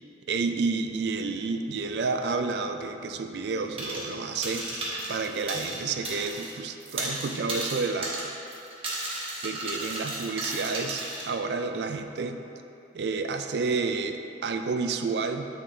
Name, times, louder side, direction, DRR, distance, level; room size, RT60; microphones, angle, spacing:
voice 1, 0.3-4.7 5.1-8.3 9.4-12.4 12.9-15.5, right 4 dB, 65° right, 6 dB, 0.4 m, -30 dB
sound 1, 0.8-6.4, left 1 dB, 25° left, 0.7 m, -53 dB
sound 2, 3.8-4.1 4.4-6.5 6.8-11.3, right 2 dB, 30° right, 1.1 m, -34 dB
8.3 x 3.8 x 3.3 m, 2.8 s
head